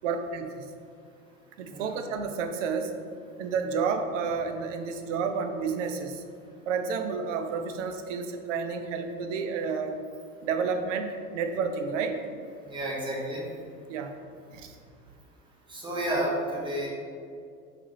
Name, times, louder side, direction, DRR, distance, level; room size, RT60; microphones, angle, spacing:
voice 1, 0.0-0.7 1.6-3.0 3.4-6.2 6.7-10.0 10.4-12.2 13.9-14.1 14.5-14.8, right 5 dB, 60° right, 6 dB, 0.5 m, -30 dB
voice 2, 12.6-13.5 15.7-16.9, right 1 dB, 10° right, -4 dB, 0.7 m, -31 dB
3.5 x 3.3 x 2.8 m, 2.3 s
figure-of-eight pair, 85°, 43 cm